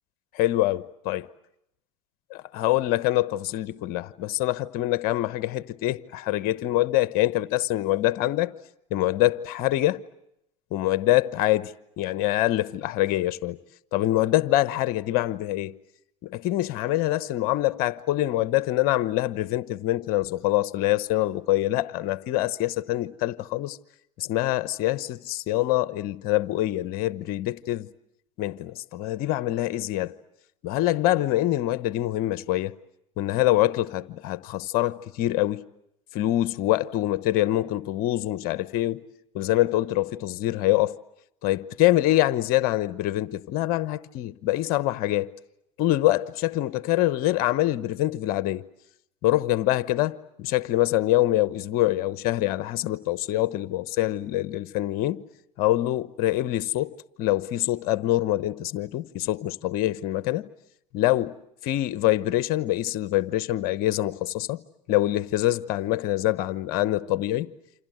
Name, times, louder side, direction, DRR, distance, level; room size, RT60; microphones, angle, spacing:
voice 1, 0.3-1.2 2.3-8.5 8.9-10.0 10.7-13.6 13.9-15.7 16.2-23.8 24.2-27.9 28.4-30.1 30.6-32.7 33.2-35.6 36.1-39.0 39.3-40.9 41.4-45.3 45.8-48.6 49.2-55.2 55.6-60.5 60.9-61.4 61.6-64.6 64.9-67.5, left 15 dB, 60° left, 1.0 m, -25 dB
28.5 x 27.0 x 7.8 m
hypercardioid pair, 70°, 18 cm